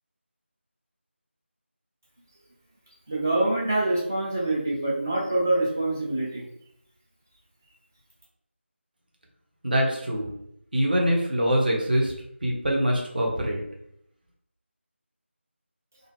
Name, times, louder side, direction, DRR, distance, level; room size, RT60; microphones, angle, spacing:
voice 1, 3.1-6.4, right 2 dB, 15° right, -4 dB, 0.4 m, -25 dB
voice 2, 9.6-10.3 10.7-12.1 12.4-13.6, equal, 50° right, -1 dB, 0.8 m, -24 dB
2.5 x 2.3 x 3.2 m, 0.75 s
figure-of-eight pair, 165°, 7 cm